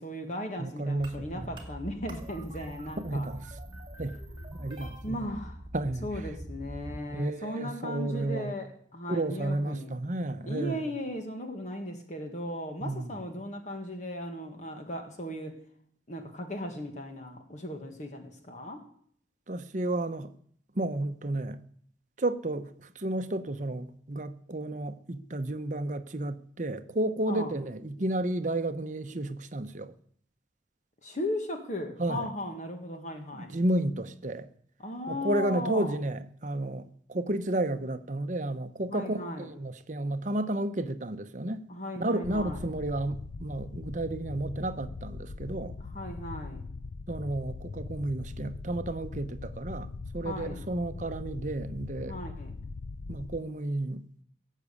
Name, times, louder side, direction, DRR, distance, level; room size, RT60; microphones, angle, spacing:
voice 1, 0.0-3.3 5.0-5.6 6.0-9.9 10.4-15.6 16.1-18.8 27.3-27.5 31.0-33.6 34.8-36.0 38.9-39.5 41.7-42.7 45.8-46.6 50.2-50.6 52.1-52.5, left 1 dB, 40° left, 1.7 m, -37 dB
voice 2, 0.6-1.6 3.0-3.4 4.0-4.2 4.5-5.3 5.7-6.1 7.1-8.5 9.1-10.8 12.8-13.1 19.5-20.3 20.7-21.6 22.2-29.9 32.0-32.3 33.3-34.5 35.1-41.6 42.0-45.7 47.1-52.1 53.1-54.0, right 1 dB, 40° right, 0.8 m, -32 dB
sound 1, 1.0-7.0, equal, 25° right, 2.5 m, -43 dB
sound 2, 42.2-53.4, left 3 dB, 70° left, 0.6 m, -41 dB
17.5 x 7.5 x 8.5 m
head